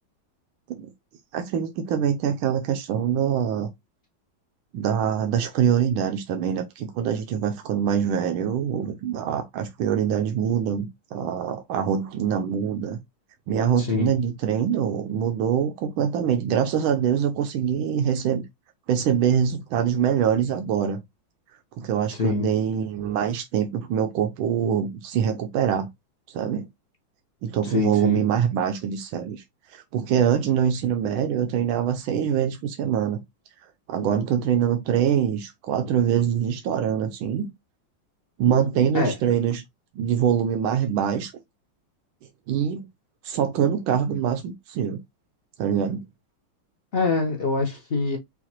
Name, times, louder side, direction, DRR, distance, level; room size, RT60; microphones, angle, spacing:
voice 1, 1.3-3.7 4.7-13.0 13.5-18.4 18.9-21.0 21.8-25.9 26.3-26.7 27.4-29.4 29.7-33.2 33.9-37.5 38.4-39.6 40.0-41.3 42.5-42.9 43.2-45.0 45.6-46.0, right 8 dB, 85° right, 1.4 m, -24 dB
voice 2, 13.8-14.1 22.1-22.5 27.6-28.2 38.9-39.1 46.9-48.2, left 4 dB, 75° left, 0.5 m, -25 dB
6.0 x 2.4 x 2.9 m
omnidirectional pair, 2.2 m